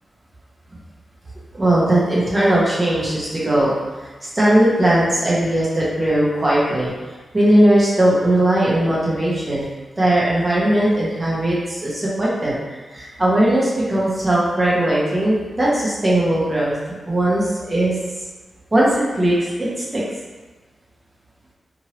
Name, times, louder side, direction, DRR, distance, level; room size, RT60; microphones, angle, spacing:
voice 1, 1.5-3.7 4.3-6.9 7.3-9.7 10.0-12.6 12.9-16.7 17.1-17.9 18.7-20.0, right 1 dB, 20° right, -7 dB, 0.9 m, -18 dB
3.0 x 2.6 x 3.0 m, 1.3 s
wide cardioid pair, 140°, 0 cm